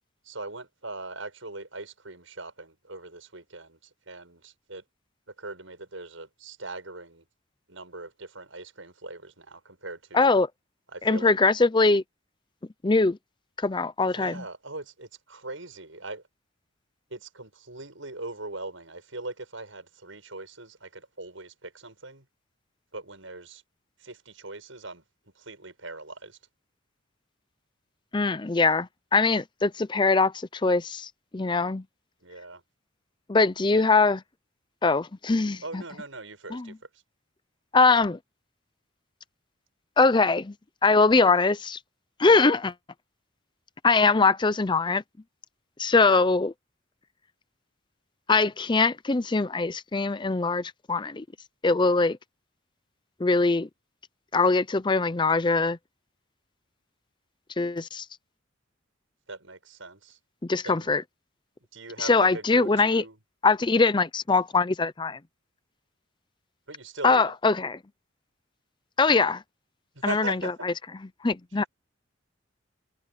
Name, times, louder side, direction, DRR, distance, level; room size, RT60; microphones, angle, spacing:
voice 1, 0.3-3.8 4.1-4.8 5.4-7.2 7.7-10.3 10.9-11.4 14.1-16.2 17.1-22.2 22.9-23.6 24.0-25.0 25.5-26.4 32.2-32.6 33.7-33.8 35.6-36.7 46.0-46.3 59.3-60.2 60.6-60.9 61.7-63.1 66.7-67.2 70.0-70.5, right 2 dB, 80° right, 7.6 m, -40 dB
voice 2, 10.1-10.5 11.0-12.0 12.8-13.2 13.6-14.4 28.1-31.8 33.3-34.2 34.8-35.8 36.5-36.8 37.7-38.2 40.0-40.5 40.8-41.8 42.2-42.7 43.8-45.0 45.8-46.5 48.3-51.2 51.6-52.2 53.2-53.7 54.3-55.8 57.6-58.0 60.4-61.0 62.0-63.0 63.4-65.2 67.0-67.8 69.0-69.4 70.0-70.7 71.2-71.6, left 3 dB, 25° left, 0.5 m, -22 dB
open air
head